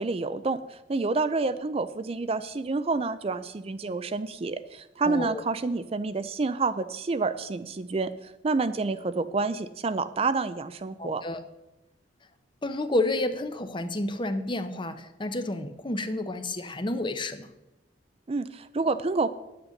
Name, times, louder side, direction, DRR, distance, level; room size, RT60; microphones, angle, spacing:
voice 1, 0.0-11.2 18.3-19.3, right 3 dB, 30° right, 12 dB, 0.4 m, -28 dB
voice 2, 5.0-5.4 11.0-11.4 12.6-17.5, left 2 dB, 25° left, 10 dB, 0.8 m, -30 dB
9.8 x 8.9 x 6.5 m, 0.95 s
head